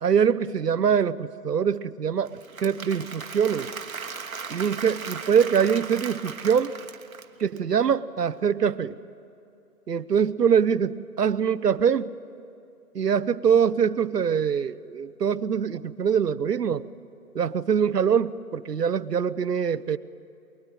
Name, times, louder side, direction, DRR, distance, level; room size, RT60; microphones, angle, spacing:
voice 1, 0.0-3.7 4.5-6.7 7.4-9.0 9.9-12.1 12.9-16.9 17.3-20.0, right 7 dB, 85° right, 16 dB, 0.9 m, -23 dB
Applause / Crowd, 2.2-7.6, right 5 dB, 60° right, 1.2 m, -37 dB
23.5 x 22.0 x 9.1 m, 2.6 s
hypercardioid pair, 175°, 46 cm